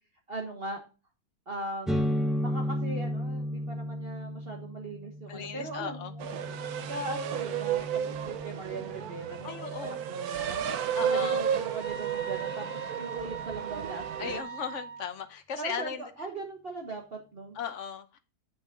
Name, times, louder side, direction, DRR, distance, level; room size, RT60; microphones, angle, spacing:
voice 1, 0.3-0.8 1.5-6.3 6.9-10.6 10.9-14.4 15.6-17.6, right 2 dB, 40° right, 1.5 m, -40 dB
sound 1, 1.9-9.5, equal, ahead, 0.4 m, -34 dB
voice 2, 5.3-6.1 9.4-10.1 10.9-11.4 14.2-16.0 17.5-18.2, left 7 dB, 55° left, 1.1 m, -37 dB
sound 2, 6.2-14.4, right 9 dB, 75° right, 1.2 m, -33 dB
sound 3, 11.8-15.0, right 5 dB, 60° right, 3.0 m, -41 dB
8.8 x 6.1 x 3.8 m
omnidirectional pair, 1.6 m